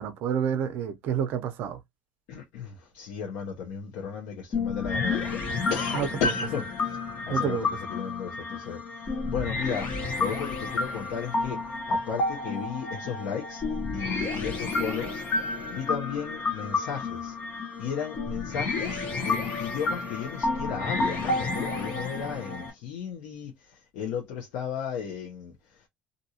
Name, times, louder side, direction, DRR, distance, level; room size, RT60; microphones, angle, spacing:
voice 1, 0.0-1.8 5.9-6.1 7.3-7.7, right 8 dB, 55° right, 0.6 m, -29 dB
voice 2, 2.3-5.4 5.7-13.6 13.9-15.2 15.7-17.4 17.8-25.9, left 7 dB, 85° left, 0.8 m, -35 dB
sound 1, 4.5-22.7, left 3 dB, 40° left, 1.0 m, -30 dB
2.6 x 2.4 x 2.8 m
cardioid pair, 165°, 4 cm